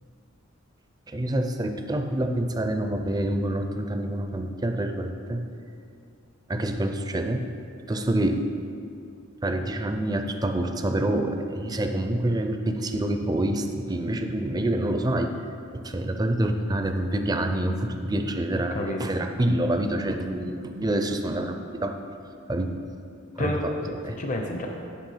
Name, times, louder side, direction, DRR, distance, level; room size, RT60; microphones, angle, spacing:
voice 1, 1.1-5.4 6.5-7.4 7.9-8.4 9.4-15.3 15.7-21.9 22.5-22.8 23.4-23.5 24.0-24.1, right 1 dB, 20° right, 5 dB, 0.4 m, -27 dB
voice 2, 18.5-19.0 23.4-23.9 24.2-24.7, left 1 dB, 40° left, 2 dB, 0.6 m, -30 dB
10.0 x 3.4 x 5.6 m, 2.5 s
head